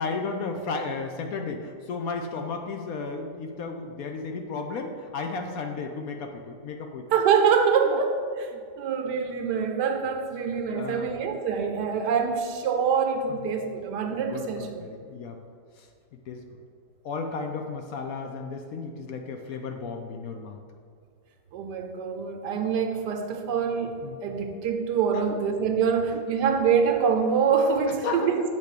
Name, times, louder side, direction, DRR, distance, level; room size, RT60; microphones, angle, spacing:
voice 1, 0.0-7.0 7.9-8.0 8.5-8.6 10.7-11.2 11.9-12.1 13.3-13.5 14.1-15.4 15.7-15.9 16.3-16.5 17.0-20.6 24.0-24.2 25.1-25.2 26.5-26.6 27.9-28.3, left 4 dB, 70° left, 4 dB, 0.9 m, -34 dB
voice 2, 7.1-14.8 21.5-28.4, right 6 dB, 75° right, 5 dB, 1.3 m, -25 dB
8.2 x 3.4 x 6.6 m, 2.2 s
omnidirectional pair, 1.8 m